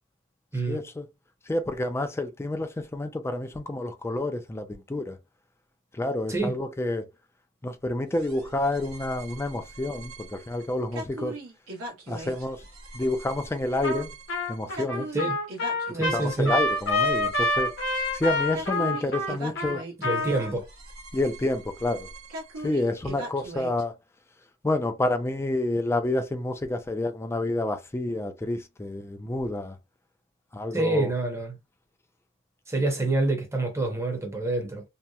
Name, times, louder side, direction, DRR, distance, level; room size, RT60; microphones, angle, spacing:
voice 1, 0.7-1.0 1.5-5.2 5.9-7.1 7.6-11.3 12.1-12.6 12.9-14.1 14.5-15.1 15.9-17.7 18.1-19.8 21.1-22.1 22.6-23.9 24.6-29.8 30.5-31.1, left 2 dB, 10° left, 0.3 m, -29 dB
sound 1, 8.1-23.8, right 2 dB, 90° right, 1.0 m, -42 dB
Trumpet, 13.8-14.0 14.3-20.5, left 2 dB, 60° left, 0.8 m, -27 dB
voice 2, 15.9-16.5 20.0-20.7 30.7-31.6 32.7-34.8, right 2 dB, 15° right, 0.7 m, -27 dB
2.7 x 2.1 x 2.3 m
head